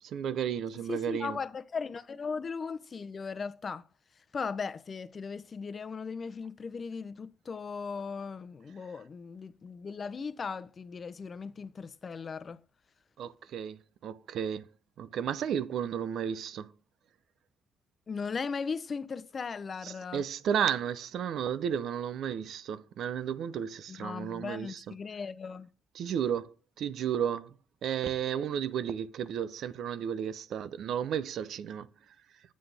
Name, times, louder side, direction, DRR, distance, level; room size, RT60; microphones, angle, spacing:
voice 1, 0.0-1.4 13.2-14.7 15.0-16.7 19.8-24.9 26.0-27.5 27.8-31.9, right 8 dB, 70° right, 0.6 m, -33 dB
voice 2, 0.9-3.8 4.3-12.6 18.1-20.2 23.9-25.7, left 5 dB, 40° left, 0.7 m, -37 dB
7.8 x 7.6 x 3.4 m
cardioid pair, 90°, 0 cm